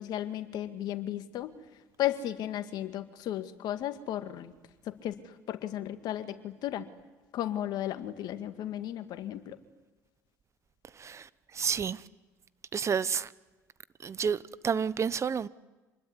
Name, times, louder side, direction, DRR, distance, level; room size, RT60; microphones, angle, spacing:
voice 1, 0.0-1.5 2.0-4.5 4.9-5.2 5.5-6.9 7.3-9.6, left 12 dB, 60° left, 1.9 m, -34 dB
voice 2, 11.5-12.0 12.7-13.3 14.0-14.4 14.6-15.5, right 6 dB, 40° right, 0.9 m, -29 dB
27.0 x 20.5 x 9.7 m
hypercardioid pair, 60°, 8 cm